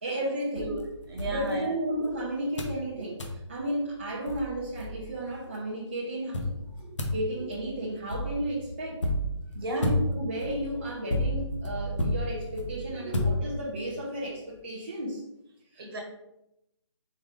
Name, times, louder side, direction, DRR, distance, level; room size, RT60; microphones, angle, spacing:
voice 1, 0.0-0.7 1.3-6.5 7.1-9.0 9.8-15.2 15.7-15.8, right 1 dB, 25° right, -5 dB, 0.5 m, -33 dB
sound 1, 0.6-2.1 2.6-2.8 3.2-3.4 4.0-4.1 4.3-5.4 6.3-13.9, left 1 dB, 75° left, 1.0 m, -32 dB
voice 2, 1.1-1.7 3.0-3.1 6.8-6.9 7.3-7.4 9.5-10.0 12.9-13.2 15.8-16.0, right 2 dB, 50° right, 0 dB, 1.4 m, -35 dB
4.4 x 3.5 x 3.3 m, 0.86 s
hypercardioid pair, 170°, 15 cm